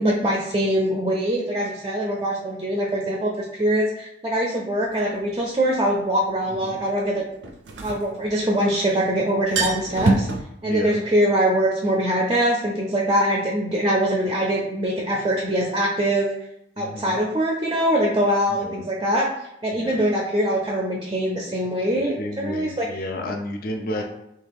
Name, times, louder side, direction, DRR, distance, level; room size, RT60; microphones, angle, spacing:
voice 1, 0.0-7.2 7.8-10.3 10.6-16.3 16.8-19.3 19.6-22.9 24.0-24.1, right 1 dB, 25° right, -2 dB, 0.4 m, -23 dB
sound 1, 5.0-5.1 7.4-8.7 9.0-9.1 9.4-10.4, right 3 dB, 80° right, 0.5 m, -24 dB
voice 2, 10.6-11.0 16.8-17.2 18.5-18.9 19.7-20.0 21.9-24.0, left 1 dB, 50° left, 3 dB, 0.4 m, -32 dB
3.2 x 2.3 x 3.4 m, 0.79 s
head